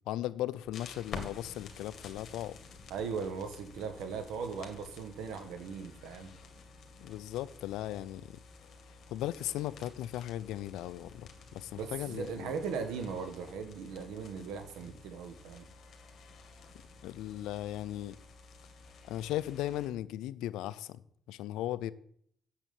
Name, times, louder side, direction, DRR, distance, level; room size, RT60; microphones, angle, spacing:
voice 1, 0.1-2.6 7.0-8.4 9.1-12.5 17.0-18.2 19.1-21.0 21.3-21.9, left 13 dB, 85° left, 0.5 m, -37 dB
sound 1, 0.6-19.9, left 4 dB, 60° left, 2.2 m, -51 dB
voice 2, 2.9-6.3 11.8-15.7, right 5 dB, 85° right, 1.6 m, -38 dB
7.5 x 7.3 x 8.4 m
cardioid pair, 80°, 0 cm